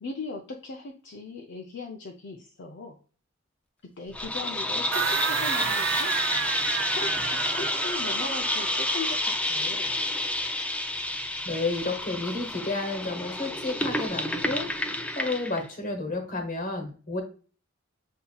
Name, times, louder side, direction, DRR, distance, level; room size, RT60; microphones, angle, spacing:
voice 1, 0.0-3.0 4.0-6.2 6.8-9.9, left 3 dB, 60° left, 1 dB, 0.5 m, -39 dB
sound 1, 4.1-15.6, left 1 dB, 5° left, 0.3 m, -29 dB
sound 2, 4.9-9.3, right 8 dB, 65° right, 0.4 m, -31 dB
voice 2, 11.4-14.7 15.1-17.2, left 3 dB, 40° left, 4 dB, 1.1 m, -31 dB
7.0 x 2.7 x 2.3 m, 0.39 s
head